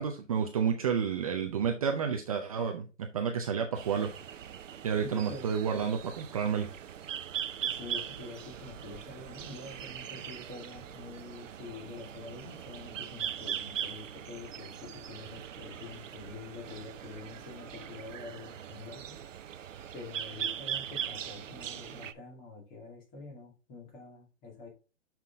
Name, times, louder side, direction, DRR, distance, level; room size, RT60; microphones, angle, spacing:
voice 1, 0.0-4.1 4.8-6.7, right 7 dB, 30° right, 3 dB, 0.6 m, -30 dB
sound 1, 3.7-22.1, right 9 dB, 80° right, 0.8 m, -40 dB
voice 2, 5.0-5.5 7.6-19.2 19.9-24.7, left 3 dB, 20° left, 1 dB, 2.3 m, -46 dB
7.3 x 6.0 x 3.4 m, 0.32 s
hypercardioid pair, 160°, 38 cm